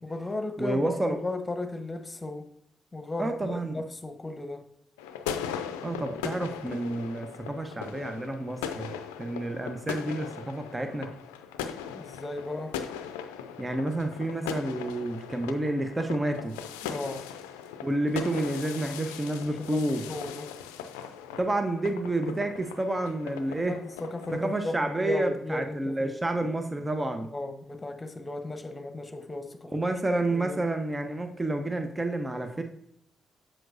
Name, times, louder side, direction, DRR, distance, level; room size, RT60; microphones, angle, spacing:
voice 1, 0.0-2.5 2.9-4.7 11.8-12.8 16.8-17.3 19.3-20.5 23.7-26.2 27.2-29.8 30.3-30.6, left 2 dB, 30° left, 1.1 m, -36 dB
voice 2, 0.6-1.2 3.2-3.8 5.8-11.1 13.6-16.6 17.8-20.1 21.4-23.8 24.3-27.3 29.7-32.6, right 1 dB, 25° right, 1.0 m, -29 dB
sound 1, 5.0-24.4, left 8 dB, 90° left, 0.4 m, -39 dB
7.6 x 7.5 x 2.7 m
hypercardioid pair, 40°, 0 cm